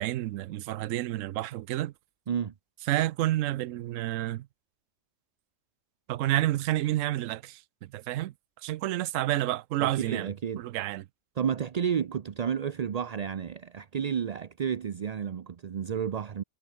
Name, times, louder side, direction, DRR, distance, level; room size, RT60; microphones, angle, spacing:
voice 1, 0.0-1.9 2.9-4.5 6.1-8.3 8.6-10.3 10.6-11.0, right 15 dB, 85° right, 0.9 m, -29 dB
voice 2, 9.8-10.6 11.4-16.4, right 7 dB, 45° right, 0.5 m, -31 dB
omnidirectional pair, 1.3 m